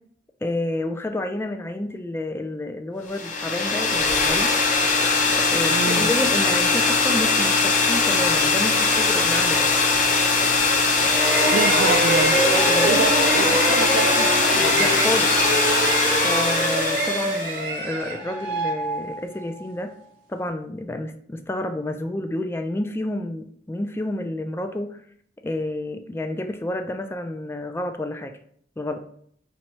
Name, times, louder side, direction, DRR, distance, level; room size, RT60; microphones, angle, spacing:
voice 1, 0.4-4.6 5.3-9.7 12.5-12.9 14.8-15.4 16.2-20.0 20.3-25.0 25.4-28.3 28.8-29.1, left 1 dB, 15° left, 7 dB, 0.3 m, -29 dB
sound 1, 3.1-17.6, left 3 dB, 45° left, 0.6 m, -21 dB
voice 2, 5.7-6.1 11.5-12.4 12.8-14.9, right 5 dB, 70° right, 11 dB, 0.3 m, -27 dB
sound 2, 11.0-19.6, right 2 dB, 50° right, 0.9 m, -24 dB
4.1 x 3.3 x 3.1 m, 0.65 s
head